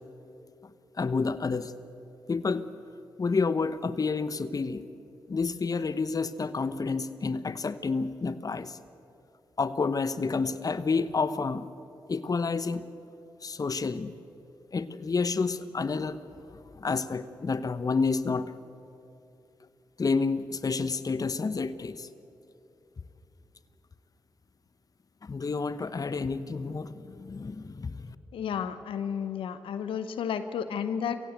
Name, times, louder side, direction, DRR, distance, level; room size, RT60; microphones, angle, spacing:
voice 1, 1.0-1.7 2.3-2.7 3.2-4.8 5.3-8.8 9.6-11.7 12.1-12.8 13.4-14.1 14.7-16.2 16.8-18.5 20.0-22.1 25.2-28.2, left 4 dB, 45° left, 14 dB, 0.9 m, -29 dB
voice 2, 28.3-31.2, left 7 dB, 80° left, 11 dB, 0.9 m, -32 dB
23.5 x 16.0 x 8.1 m, 2.9 s
supercardioid pair, 40°, 9 cm